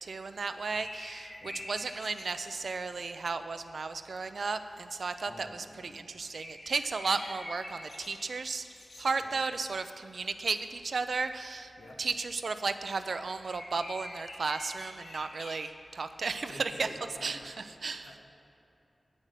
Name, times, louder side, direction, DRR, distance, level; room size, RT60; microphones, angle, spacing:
voice 1, 0.0-8.6 9.0-11.7 12.0-16.9 17.2-17.5 17.8-18.1, right 4 dB, 70° right, 10 dB, 0.5 m, -34 dB
sound 1, 0.7-2.9 6.1-9.4 11.5-11.6 13.4-15.6, left 1 dB, 70° left, 1.6 m, -46 dB
voice 2, 5.3-6.0 9.2-9.4 11.8-12.0 16.5-18.2, left 1 dB, 90° left, 0 dB, 1.3 m, -50 dB
8.7 x 7.4 x 6.7 m, 2.8 s
wide cardioid pair, 95°, 0 cm